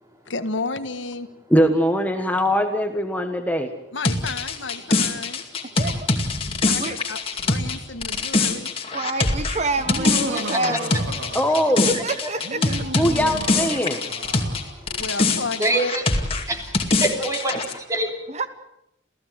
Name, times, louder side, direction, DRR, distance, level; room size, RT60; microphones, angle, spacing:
voice 1, 0.3-1.3 3.9-5.4 6.6-8.7 14.9-15.9, left 3 dB, 80° left, 10 dB, 1.6 m, -32 dB
voice 2, 1.5-3.7 11.3-12.0 13.0-14.0, equal, 10° left, 6 dB, 1.4 m, -21 dB
sound 1, 4.0-14.6 14.9-17.7, left 3 dB, 30° left, 2.3 m, -23 dB
voice 3, 5.6-6.1 6.8-7.0 8.9-11.1 11.9-12.8 18.3-18.5, right 2 dB, 35° right, 10 dB, 1.2 m, -28 dB
Laughter, 9.8-11.9 12.4-14.7, right 1 dB, 75° right, 3.2 m, -33 dB
voice 4, 14.4-15.0 15.6-16.0 16.5-18.1, right 2 dB, 15° right, 3 dB, 3.3 m, -26 dB
28.5 x 15.5 x 8.1 m, 0.82 s
head